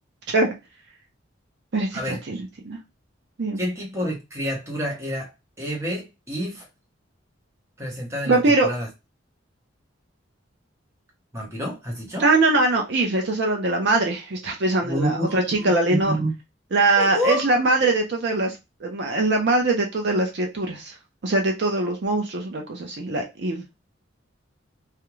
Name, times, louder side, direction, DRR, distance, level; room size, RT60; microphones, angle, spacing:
voice 1, 1.7-2.4 2.6-2.8 3.4-3.6 8.3-8.7 12.2-16.1 16.7-21.0 21.2-23.6, right 2 dB, 60° right, 2 dB, 0.5 m, -22 dB
voice 2, 3.6-5.3 5.6-6.7 7.8-8.9 11.3-12.2 14.8-16.3 17.0-17.4, equal, 15° right, -2 dB, 0.9 m, -28 dB
2.4 x 2.2 x 3.0 m, 0.24 s
head